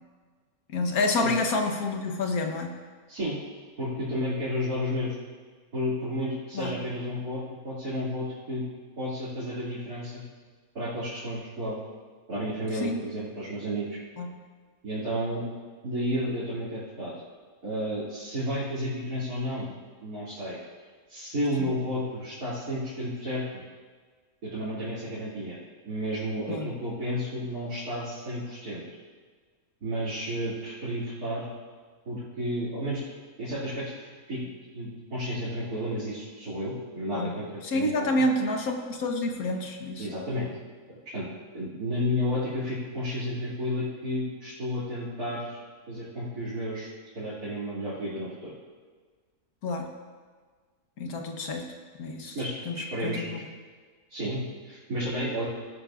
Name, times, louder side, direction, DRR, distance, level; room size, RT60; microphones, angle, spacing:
voice 1, 0.7-2.7 6.5-6.8 12.8-13.0 14.2-14.3 21.6-21.7 26.5-26.7 37.1-37.3 37.6-40.1 49.6-49.9 51.0-51.7 52.0-52.4 52.6-53.4, left 2 dB, 80° left, 3 dB, 1.6 m, -28 dB
voice 2, 3.8-5.1 5.7-8.6 9.0-10.2 10.7-11.8 12.3-14.0 14.8-15.4 15.8-17.1 17.6-19.7 20.0-20.6 21.1-23.4 24.4-25.6 25.9-28.8 29.8-31.5 32.1-33.0 33.4-34.4 34.7-38.1 40.0-40.5 40.9-41.3 41.5-45.6 45.9-46.9 47.1-48.5 52.3-53.4 54.1-55.5, equal, 90° right, -13 dB, 3.1 m, -32 dB
16.5 x 11.5 x 2.5 m, 1.5 s
omnidirectional pair, 1.5 m